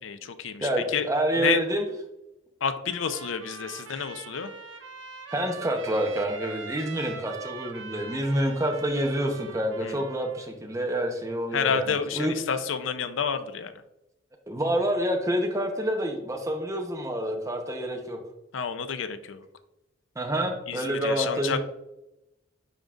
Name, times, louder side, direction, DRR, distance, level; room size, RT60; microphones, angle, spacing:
voice 1, 0.0-1.1 1.4-1.6 2.6-4.5 9.8-10.0 11.5-13.7 18.5-19.4 20.7-21.6, left 6 dB, 90° left, 11 dB, 0.5 m, -29 dB
voice 2, 0.6-1.8 5.3-12.3 14.5-18.2 20.2-21.6, right 1 dB, 15° right, 3 dB, 0.9 m, -28 dB
Trumpet, 2.9-10.5, right 5 dB, 90° right, 0.8 m, -43 dB
10.5 x 3.9 x 2.5 m, 0.91 s
head